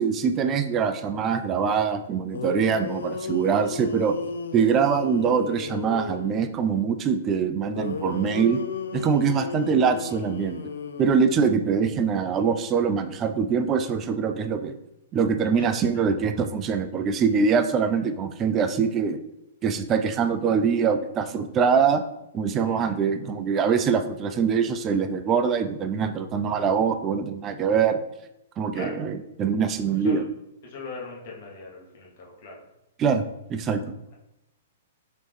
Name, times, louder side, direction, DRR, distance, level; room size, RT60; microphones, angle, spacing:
voice 1, 0.0-4.1 4.5-8.6 8.9-10.6 11.0-14.7 15.1-19.2 19.6-22.0 22.3-28.0 28.6-30.2 33.0-33.2 33.5-33.8, right 6 dB, 25° right, 9 dB, 0.3 m, -23 dB
sound 1, 2.0-2.1 2.3-6.5 7.7-11.8, left 5 dB, 65° left, 0.3 m, -34 dB
voice 2, 30.6-32.6, left 4 dB, 50° left, -2 dB, 1.2 m, -39 dB
4.1 x 3.0 x 3.3 m, 0.87 s
figure-of-eight pair, 110°, 0 cm